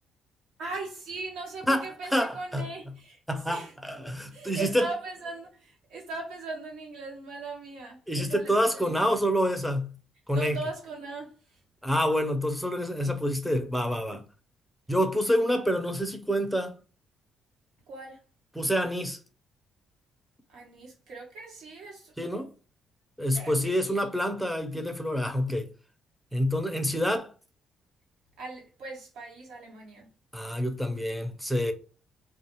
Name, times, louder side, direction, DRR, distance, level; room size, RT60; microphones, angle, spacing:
voice 1, 0.6-3.2 3.5-3.7 4.3-9.1 10.3-11.6 17.9-18.2 20.5-22.5 23.3-24.1 28.4-30.1, right 3 dB, 85° right, 1.1 m, -39 dB
voice 2, 2.1-2.7 3.3-4.9 8.1-10.0 10.3-10.6 11.8-14.2 14.9-16.8 18.5-19.2 22.2-22.5 23.2-25.7 26.3-27.3 30.3-31.7, equal, ahead, 0.5 m, -27 dB
2.4 x 2.3 x 2.9 m
cardioid pair, 110°, 0 cm